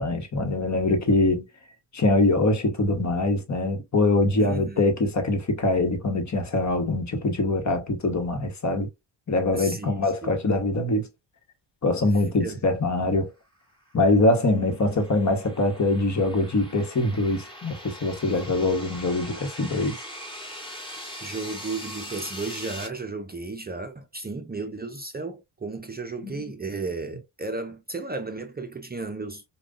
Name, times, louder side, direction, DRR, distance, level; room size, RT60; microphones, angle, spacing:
voice 1, 0.0-1.5 1.9-8.9 9.3-11.1 11.8-13.3 13.9-20.0 26.2-26.4, left 2 dB, 40° left, 1.3 m, -23 dB
voice 2, 4.4-4.8 9.5-10.3 12.4-12.6 18.3-18.4 21.2-29.4, right 3 dB, 20° right, 0.7 m, -34 dB
sound 1, 13.9-22.9, left 1 dB, 10° left, 1.9 m, -41 dB
4.9 x 2.4 x 2.5 m
supercardioid pair, 60°, 45 cm